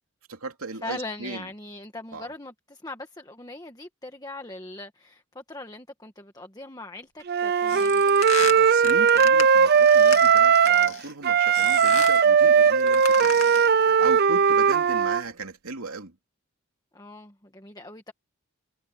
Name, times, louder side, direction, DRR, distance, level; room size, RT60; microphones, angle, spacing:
voice 1, 0.3-1.5 2.1-2.3 8.3-13.4 13.7-16.1, right 3 dB, 80° right, 2.7 m, -37 dB
voice 2, 0.8-8.1 16.9-18.1, left 2 dB, 15° left, 1.5 m, -40 dB
Wind instrument woodwind instrument, 7.3-11.0 11.2-15.2, right 6 dB, 45° right, 0.5 m, -19 dB
sound 1, 7.7-11.1 11.5-12.2 12.8-13.8, left 8 dB, 70° left, 2.5 m, -35 dB
head